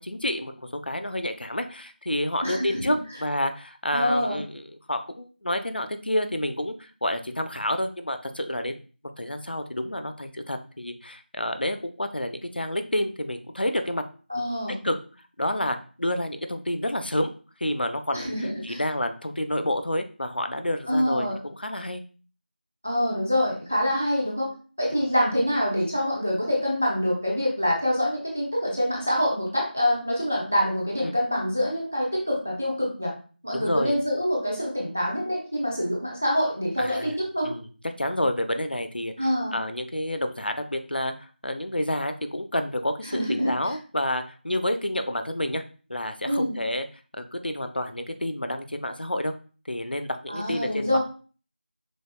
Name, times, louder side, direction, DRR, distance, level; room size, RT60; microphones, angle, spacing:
voice 1, 0.0-8.8 9.2-14.0 14.7-15.0 15.4-17.3 17.6-18.3 18.6-22.0 24.9-25.0 31.0-31.1 33.5-34.0 36.8-37.2 37.4-37.7 38.0-45.6 45.9-46.9 47.1-49.3 49.7-51.0, left 1 dB, 60° left, 7 dB, 0.6 m, -29 dB
voice 2, 2.4-2.9 3.9-4.4 14.3-14.8 18.1-18.8 20.9-21.4 22.8-24.5 24.8-33.1 33.4-37.5 39.2-39.5 43.1-43.5 46.2-46.6 50.3-51.0, equal, 10° right, -3 dB, 0.4 m, -25 dB
5.2 x 3.7 x 2.2 m, 0.39 s
figure-of-eight pair, 175°, 6 cm